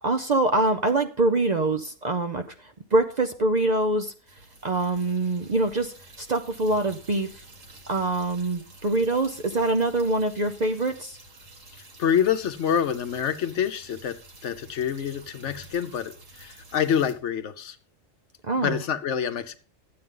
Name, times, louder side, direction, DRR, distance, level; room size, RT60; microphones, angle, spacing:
voice 1, 0.0-4.1 4.6-7.4 7.9-11.2 18.4-18.8, right 2 dB, 45° right, 7 dB, 0.6 m, -24 dB
sound 1, 4.3-17.1, right 2 dB, 90° right, 2.2 m, -49 dB
voice 2, 12.0-14.2 14.4-16.1 16.4-17.8 18.6-19.6, left 8 dB, 70° left, 10 dB, 1.1 m, -26 dB
12.0 x 8.6 x 3.8 m, 0.36 s
omnidirectional pair, 1.3 m